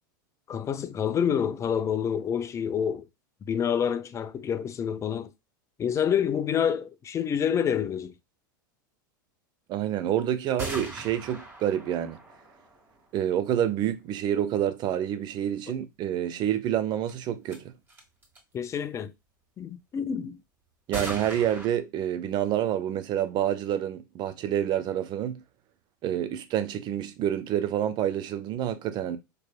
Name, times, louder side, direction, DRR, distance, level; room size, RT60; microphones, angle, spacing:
voice 1, 0.5-3.0 3.5-5.3 5.8-8.1 18.5-19.1 19.6-20.4, left 8 dB, 25° left, 0.5 m, -27 dB
voice 2, 9.7-12.2 13.1-17.7 20.9-25.4 26.0-29.2, right 10 dB, 40° right, 0.7 m, -28 dB
sound 1, 10.6-13.4 17.1-17.2 17.5-17.6 17.9-18.4 20.9-21.7, right 2 dB, 15° right, 2.3 m, -39 dB
4.5 x 3.3 x 2.4 m
hypercardioid pair, 95°, 11 cm